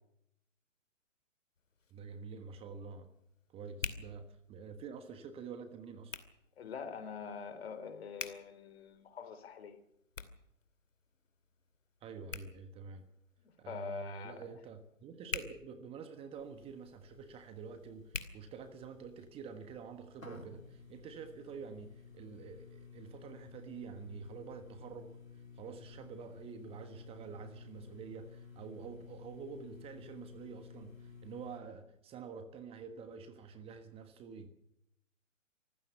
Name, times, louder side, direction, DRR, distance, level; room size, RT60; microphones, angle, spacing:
Hands, 1.5-19.2, left 5 dB, 70° left, 2.6 m, -50 dB
voice 1, 1.9-3.1 3.5-6.2 12.0-13.0 13.6-34.5, right 6 dB, 15° right, 9 dB, 1.3 m, -48 dB
voice 2, 6.6-9.8 13.4-14.5, left 6 dB, 50° left, 11 dB, 3.5 m, -44 dB
sound 1, 16.4-31.6, left 5 dB, 90° left, 2.8 m, -54 dB
25.0 x 15.5 x 6.9 m, 0.79 s
figure-of-eight pair, 130°, 39 cm